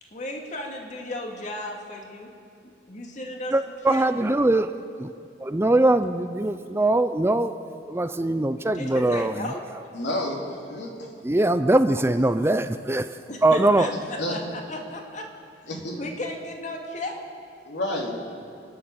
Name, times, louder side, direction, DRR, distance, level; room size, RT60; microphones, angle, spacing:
voice 1, 0.0-2.3 2.6-4.1 8.7-9.7 13.3-15.3 16.0-17.3, left 1 dB, 45° left, 2 dB, 2.4 m, -35 dB
voice 2, 3.5-4.7 5.0-5.1 5.4-9.4 11.2-13.1 13.4-13.9, right 2 dB, 15° right, 10 dB, 0.6 m, -22 dB
voice 3, 9.9-11.1 14.2-14.4 15.7-16.0 17.7-18.2, left 1 dB, 75° left, 0 dB, 3.3 m, -30 dB
29.5 x 10.5 x 8.7 m, 2.5 s
head